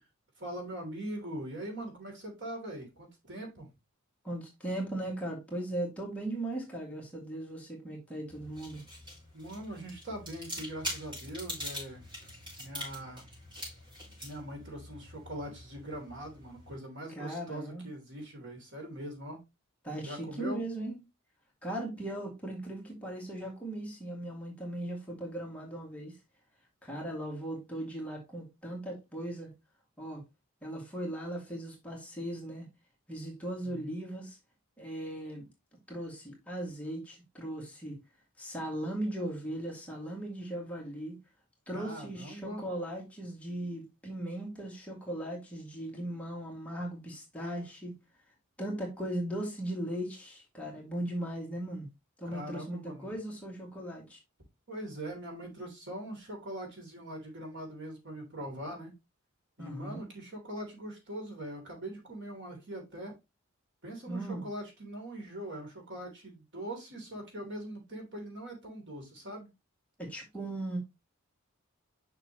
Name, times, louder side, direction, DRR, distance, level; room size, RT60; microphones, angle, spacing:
voice 1, 0.4-3.7 9.3-12.1 12.6-13.3 14.2-19.4 20.0-20.6 33.6-34.0 41.7-42.6 52.2-53.1 54.7-58.9 59.6-63.1 63.8-69.5, right 1 dB, 60° right, 3.0 m, -42 dB
voice 2, 4.2-8.8 17.2-17.9 19.8-21.0 21.6-26.2 26.8-29.5 30.0-30.2 30.6-32.7 33.1-34.4 34.8-35.5 35.9-38.0 38.4-41.2 41.7-48.0 48.6-51.9 52.2-54.2 59.6-60.0 64.1-64.5 70.0-70.8, right 1 dB, 5° left, 2.0 m, -38 dB
sound 1, 8.3-16.7, left 1 dB, 25° right, 4.7 m, -44 dB
6.8 x 5.9 x 2.9 m
head